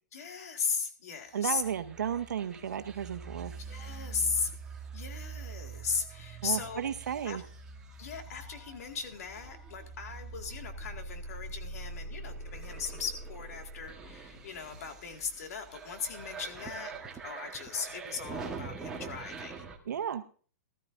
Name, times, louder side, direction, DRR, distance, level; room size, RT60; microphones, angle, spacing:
voice 1, 0.1-1.6 3.6-4.5 4.9-6.8 7.2-7.4 8.0-16.9 17.2-19.7, left 5 dB, 60° left, 6 dB, 2.0 m, -37 dB
voice 2, 1.3-3.5 6.4-7.4 19.9-20.2, right 8 dB, 75° right, 10 dB, 1.1 m, -33 dB
sound 1, 1.4-19.8, right 4 dB, 5° right, 1.3 m, -44 dB
sound 2, 4.5-5.6 5.9-7.6 7.9-9.5 9.8-11.5 11.8-13.4 13.7-15.4 15.7-17.3 17.6-19.3 19.6-20.1, left 4 dB, 80° left, 6.2 m, -58 dB
18.5 x 13.5 x 2.6 m, 0.41 s
hypercardioid pair, 165°, 9 cm